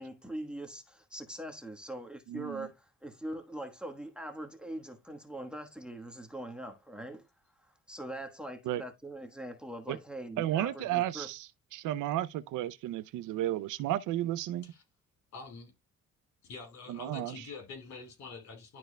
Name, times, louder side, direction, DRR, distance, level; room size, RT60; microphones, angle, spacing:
voice 1, 0.0-7.3 7.6-11.3, right 1 dB, 5° right, 1.3 m, -42 dB
voice 2, 2.3-2.7 8.7-8.8 9.9-10.0 10.4-11.5 11.7-14.7 16.9-17.3, right 13 dB, 85° right, 0.6 m, -33 dB
voice 3, 15.3-15.7 16.4-18.8, left 4 dB, 70° left, 4.5 m, -46 dB
11.5 x 4.5 x 2.2 m
cardioid pair, 90°, 30 cm